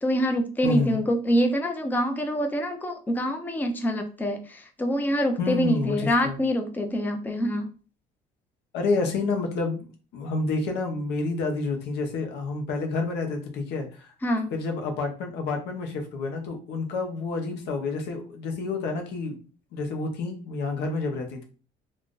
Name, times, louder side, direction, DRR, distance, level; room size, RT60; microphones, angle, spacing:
voice 1, 0.0-7.7 14.2-14.5, equal, 10° left, 5 dB, 0.5 m, -25 dB
voice 2, 0.6-1.0 5.4-6.4 8.7-9.9 10.1-14.1 14.5-19.4 19.7-21.4, left 3 dB, 85° left, 4 dB, 0.8 m, -29 dB
2.4 x 2.4 x 3.7 m, 0.36 s
cardioid pair, 110°, 17 cm